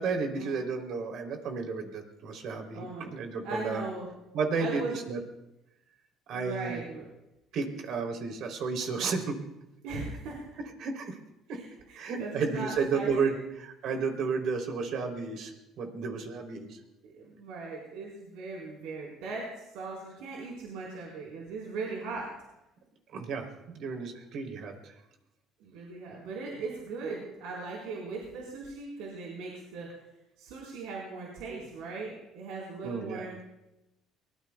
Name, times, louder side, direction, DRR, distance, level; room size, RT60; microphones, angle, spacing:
voice 1, 0.0-3.8 4.3-5.2 6.3-6.8 7.5-9.4 10.6-11.2 11.5-11.6 11.9-16.8 23.1-24.9 32.8-33.3, right 4 dB, 65° right, 3 dB, 3.3 m, -32 dB
voice 2, 2.7-3.1 3.4-4.1 4.6-5.1 6.3-7.0 9.8-10.4 11.5-13.4 17.0-19.5 19.7-22.3 25.6-29.9 30.4-33.4, right 3 dB, 90° right, -4 dB, 4.4 m, -39 dB
23.5 x 20.5 x 2.3 m, 0.91 s
cardioid pair, 100°, 0 cm